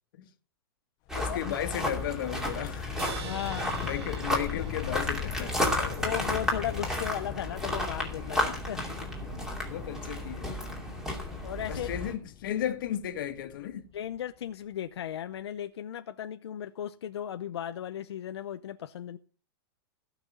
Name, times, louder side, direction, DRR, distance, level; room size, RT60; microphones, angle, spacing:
voice 1, 1.1-3.0 3.8-6.1 8.2-8.6 9.2-10.8 11.7-13.9, left 11 dB, 55° left, 1.8 m, -35 dB
sound 1, 1.1-14.2, left 13 dB, 25° left, 0.7 m, -42 dB
sound 2, 1.1-12.1, left 1 dB, 5° right, 2.6 m, -33 dB
sound 3, 3.0-6.5, right 6 dB, 80° right, 3.9 m, -45 dB
voice 2, 3.2-3.7 6.0-8.8 11.4-11.9 13.9-19.2, left 10 dB, 90° left, 0.8 m, -36 dB
17.0 x 6.1 x 6.8 m
supercardioid pair, 170°, 13 cm